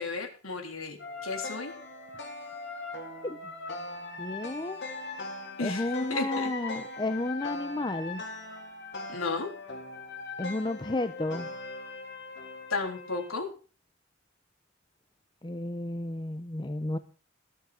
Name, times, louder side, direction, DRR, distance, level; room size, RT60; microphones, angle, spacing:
voice 1, 0.0-1.7 5.6-6.5 9.1-9.5 12.7-13.5, left 4 dB, 85° left, 3 dB, 3.6 m, -33 dB
sound 1, 1.0-13.3, left 3 dB, 60° left, 3.0 m, -40 dB
voice 2, 4.2-4.8 5.6-8.2 10.4-11.5 15.4-17.0, left 2 dB, 20° left, 11 dB, 0.7 m, -32 dB
17.5 x 7.4 x 6.8 m, 0.37 s
head